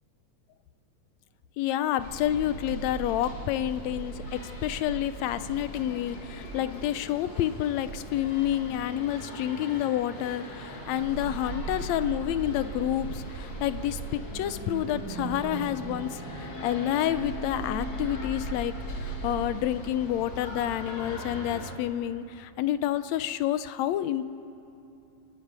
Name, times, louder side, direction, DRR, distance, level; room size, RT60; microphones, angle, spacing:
voice 1, 1.6-18.7 19.0-24.2, left 12 dB, 75° left, 13 dB, 1.8 m, -29 dB
sound 1, 2.0-21.7, left 2 dB, 40° left, 2.4 m, -42 dB
sound 2, 2.0-7.8 8.4-8.7 10.6-19.4, right 3 dB, 20° left, 7.3 m, -40 dB
sound 3, 7.8-21.1, right 8 dB, 75° right, 1.9 m, -46 dB
29.0 x 11.0 x 9.5 m, 2.8 s
omnidirectional pair, 3.4 m